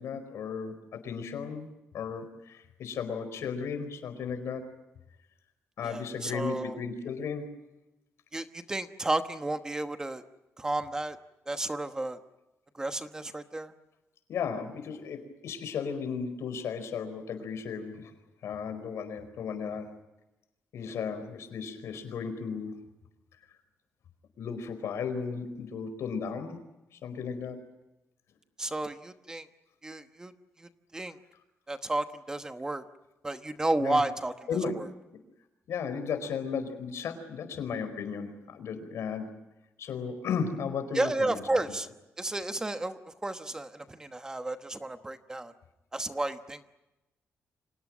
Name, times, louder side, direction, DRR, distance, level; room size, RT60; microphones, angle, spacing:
voice 1, 0.0-1.7 1.9-4.7 5.8-7.5 14.3-18.1 18.4-19.9 20.7-22.8 24.4-26.6 27.0-27.6 33.8-34.0 34.5-34.8 35.7-39.4 39.8-41.4, left 6 dB, 85° left, 9 dB, 4.7 m, -35 dB
voice 2, 5.8-6.8 8.3-10.2 10.6-11.2 11.5-12.2 12.7-13.7 28.6-29.5 29.8-30.3 30.6-31.2 31.7-32.8 33.2-34.3 34.8-34.9 40.9-41.9 42.2-45.5 45.9-46.7, right 2 dB, 15° right, 8 dB, 1.1 m, -32 dB
30.0 x 26.0 x 6.2 m, 1.0 s
wide cardioid pair, 170°, 5 cm